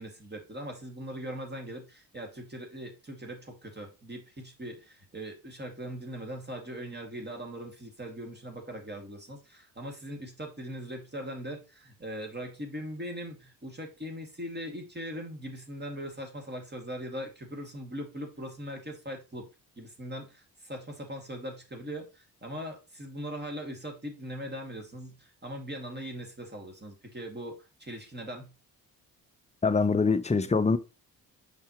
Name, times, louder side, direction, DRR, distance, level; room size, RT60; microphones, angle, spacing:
voice 1, 0.0-19.5 19.8-28.5, equal, 25° right, 2.2 m, -40 dB
voice 2, 29.6-30.8, left 4 dB, 15° left, 0.6 m, -24 dB
5.7 x 5.5 x 3.0 m
supercardioid pair, 60°, 43 cm